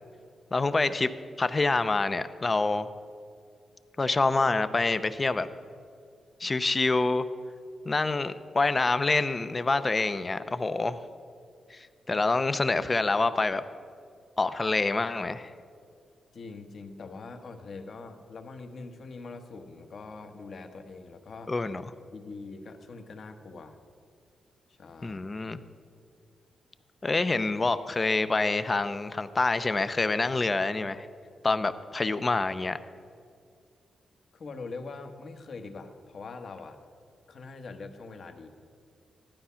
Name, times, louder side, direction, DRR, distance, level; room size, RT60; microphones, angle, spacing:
voice 1, 0.5-1.1 1.4-2.9 4.0-5.5 6.4-7.3 7.8-11.0 11.7-13.6 14.4-15.5 21.5-21.8 25.0-25.6 27.0-31.1 31.4-32.8, left 3 dB, 25° left, 12 dB, 0.6 m, -26 dB
voice 2, 16.3-21.5 22.1-23.8 24.7-25.2 34.3-36.8 37.3-38.5, left 3 dB, 55° left, 6 dB, 1.2 m, -43 dB
15.0 x 12.5 x 5.7 m, 2.3 s
wide cardioid pair, 130°, 0 cm